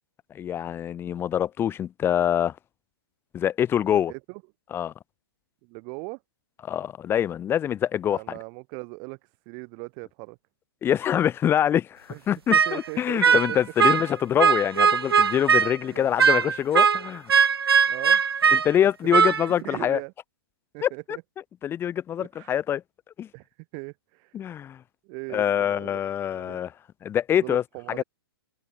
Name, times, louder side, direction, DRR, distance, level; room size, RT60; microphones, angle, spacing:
voice 1, 0.3-2.5 3.3-4.1 4.7-4.9 6.6-8.2 10.8-17.3 18.5-20.0 20.8-21.2 21.6-22.8 23.2-23.3 24.3-24.8 25.3-26.7 27.0-27.6 27.9-28.0, left 10 dB, 20° left, 1.5 m, -25 dB
voice 2, 3.9-4.4 5.6-6.2 8.1-9.2 9.5-10.4 12.1-12.2 12.5-13.6 15.9-16.1 17.9-18.6 19.1-20.1 20.7-21.2 22.2-22.5 23.3-23.4 23.7-24.3 25.0-26.0 26.3-26.6 27.3-28.0, right 39 dB, 35° right, 4.4 m, -39 dB
sound 1, 12.5-12.8 13.2-14.1 14.4-15.7 16.2-18.7 19.1-19.5, right 6 dB, 75° right, 1.6 m, -20 dB
open air
figure-of-eight pair, 125°, 13 cm